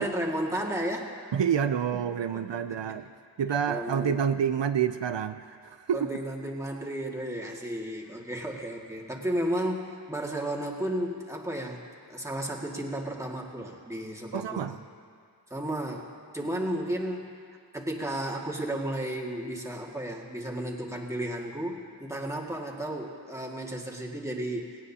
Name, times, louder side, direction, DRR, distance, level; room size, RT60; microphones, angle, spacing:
voice 1, 0.0-1.1 1.9-3.0 3.7-4.1 5.9-11.8 12.1-14.8 15.5-17.3 17.7-24.7, right 1 dB, 5° right, -2 dB, 1.9 m, -33 dB
voice 2, 1.3-3.1 3.4-6.2 14.3-14.8, right 8 dB, 85° right, 10 dB, 0.5 m, -28 dB
19.0 x 17.5 x 2.8 m, 2.2 s
wide cardioid pair, 45°, 43 cm